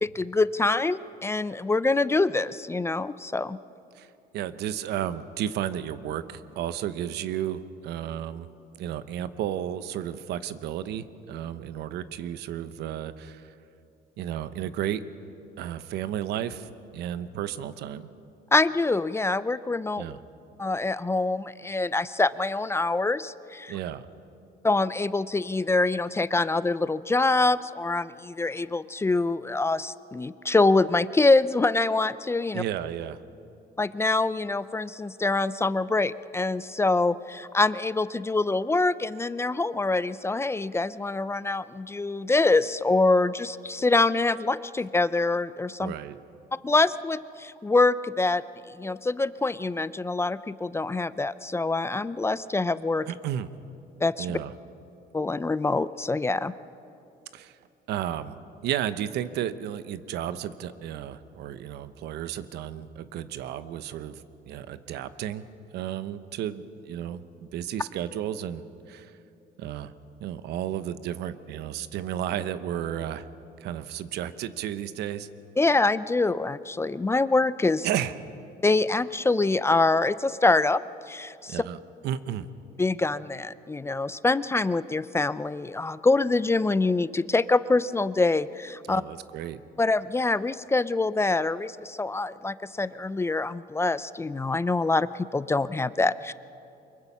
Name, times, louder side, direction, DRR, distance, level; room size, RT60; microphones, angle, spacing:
voice 1, 0.0-3.6 18.5-20.0 20.6-23.8 24.6-32.6 33.8-45.9 46.6-53.1 54.0-54.4 55.1-56.5 75.6-77.9 78.6-80.8 81.1-81.6 82.8-89.0 89.8-96.3, left 3 dB, 15° left, 16 dB, 0.4 m, -25 dB
voice 2, 4.3-8.5 8.8-13.5 14.2-15.0 15.6-18.1 20.0-20.2 23.7-24.0 32.5-33.2 45.8-46.2 53.1-53.5 54.2-54.5 57.3-57.6 57.9-58.4 58.6-65.4 65.7-69.1 69.6-69.9 70.2-73.3 73.6-75.3 77.8-78.1 81.5-82.5 88.9-89.6, right 10 dB, 80° right, 13 dB, 0.9 m, -33 dB
24.0 x 22.0 x 5.5 m, 2.7 s
cardioid pair, 110°, 17 cm